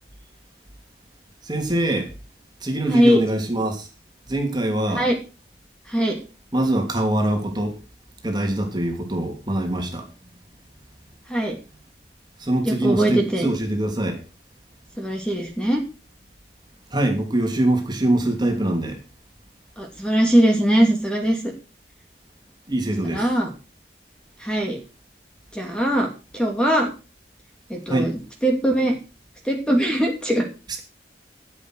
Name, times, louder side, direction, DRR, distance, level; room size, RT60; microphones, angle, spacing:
voice 1, 1.4-2.1 2.6-3.9 4.3-5.1 6.5-7.8 8.2-10.1 12.4-14.2 16.9-19.0 22.7-23.3 27.9-28.1, right 1 dB, 25° right, 3.0 m, -23 dB
voice 2, 2.9-3.2 4.9-5.1 5.9-6.2 11.3-11.5 12.6-13.5 15.0-15.8 19.8-21.4 23.0-23.5 24.4-24.8 25.5-26.1 26.3-26.9 27.7-28.1 28.4-29.0 29.4-30.5, right 1 dB, 5° left, 2.7 m, -20 dB
13.5 x 8.3 x 6.4 m
head